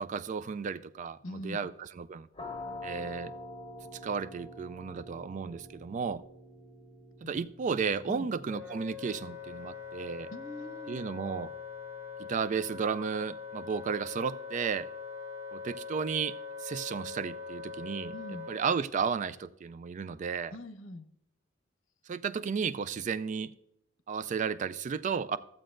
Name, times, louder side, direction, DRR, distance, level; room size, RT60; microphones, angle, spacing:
voice 1, 0.0-2.3 2.8-3.3 3.9-6.2 7.2-10.3 10.9-11.5 12.2-14.9 15.5-18.1 18.5-20.5 22.1-23.5 24.1-25.4, right 6 dB, 40° right, 0.3 m, -33 dB
voice 2, 1.2-1.6 7.2-7.3 8.1-8.3 10.3-11.0 18.1-18.5 20.5-21.1, left 1 dB, 80° left, 0.8 m, -42 dB
sound 1, 2.3-13.9, left 1 dB, 30° left, 1.0 m, -48 dB
Wind instrument woodwind instrument, 8.5-18.8, left 5 dB, 15° right, 1.4 m, -43 dB
14.0 x 7.5 x 2.5 m
head